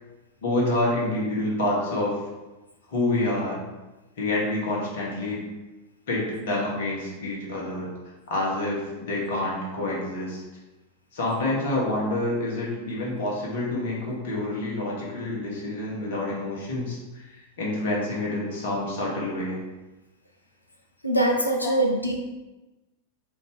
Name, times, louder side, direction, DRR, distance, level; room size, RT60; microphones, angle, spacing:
voice 1, 0.4-2.2 2.9-3.6 4.2-5.4 6.1-7.9 8.3-10.4 11.1-17.3 17.6-19.6 21.6-21.7, left 2 dB, 55° left, -3 dB, 1.3 m, -27 dB
voice 2, 21.0-22.1, right 1 dB, 85° left, 1 dB, 0.5 m, -23 dB
4.9 x 2.7 x 3.6 m, 1.1 s
figure-of-eight pair, 90°, 0 cm